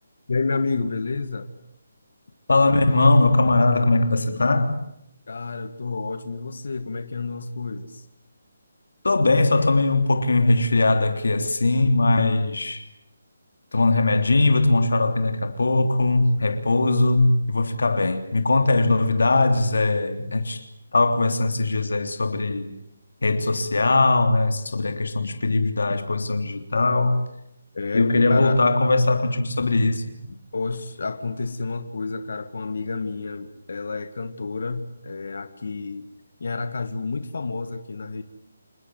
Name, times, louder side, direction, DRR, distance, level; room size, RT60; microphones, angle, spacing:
voice 1, 0.3-1.5 5.3-8.0 27.7-28.6 30.5-36.1 36.4-38.2, left 4 dB, 55° left, 1.9 m, -30 dB
voice 2, 2.5-4.8 9.0-12.8 13.7-20.6 20.9-22.7 23.2-27.3 27.9-30.0, left 2 dB, 85° left, 3.3 m, -20 dB
28.0 x 21.5 x 9.5 m
hypercardioid pair, 175°, 0 cm